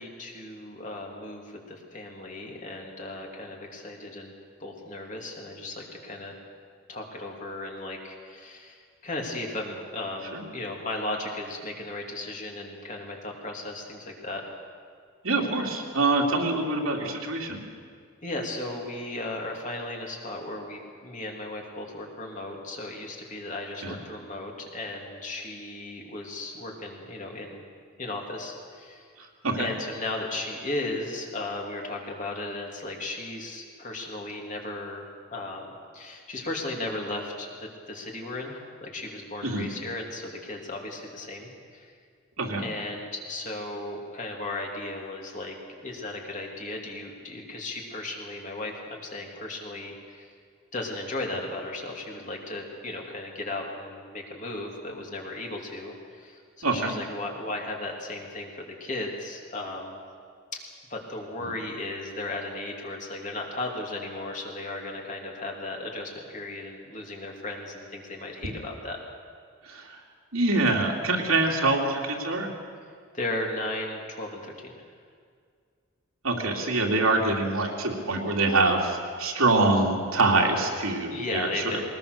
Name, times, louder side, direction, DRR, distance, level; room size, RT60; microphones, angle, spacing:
voice 1, 0.0-4.3 4.6-6.3 6.9-14.4 18.2-27.6 28.0-29.1 29.6-41.9 42.6-50.3 50.7-60.0 60.9-69.0 73.1-74.7 81.1-81.8, left 2 dB, 35° left, 0 dB, 2.9 m, -36 dB
voice 2, 15.2-17.6 23.8-23.9 29.4-29.7 39.4-39.7 42.4-42.6 56.6-56.9 69.7-69.9 70.3-72.5 76.2-81.6, right 2 dB, 85° right, 0 dB, 3.0 m, -25 dB
21.5 x 19.5 x 6.7 m, 2.1 s
head